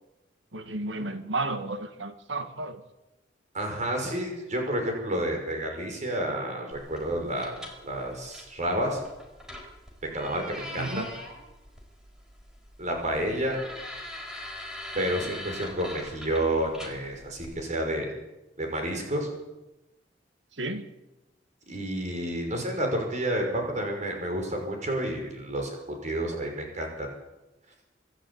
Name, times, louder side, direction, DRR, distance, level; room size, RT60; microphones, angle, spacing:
voice 1, 0.5-2.8 10.7-11.1 20.6-20.9, right 2 dB, 80° right, 9 dB, 1.8 m, -32 dB
voice 2, 3.5-9.0 10.0-11.1 12.8-13.6 14.9-18.1 18.6-19.3 21.7-27.1, right 1 dB, 40° right, 2 dB, 6.1 m, -30 dB
sound 1, 6.7-17.5, left 1 dB, 5° right, 4.8 m, -43 dB
26.0 x 12.5 x 8.7 m, 0.99 s
head